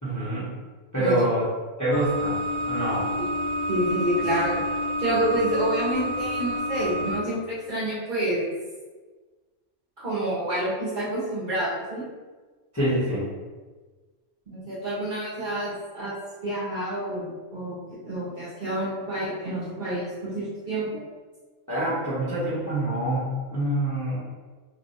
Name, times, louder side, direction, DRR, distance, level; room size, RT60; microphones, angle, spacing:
voice 1, 0.0-0.5 0.9-1.5 1.8-2.4 2.7-3.1 12.7-13.2 21.7-24.2, right 1 dB, 20° left, -10 dB, 0.7 m, -25 dB
sound 1, 1.9-7.2, equal, 75° left, 0.9 m, -28 dB
voice 2, 3.7-4.6 5.0-8.5 10.0-12.1 14.5-16.2 16.4-21.0, right 1 dB, 45° right, -8 dB, 0.8 m, -28 dB
2.6 x 2.2 x 4.0 m, 1.3 s
omnidirectional pair, 1.3 m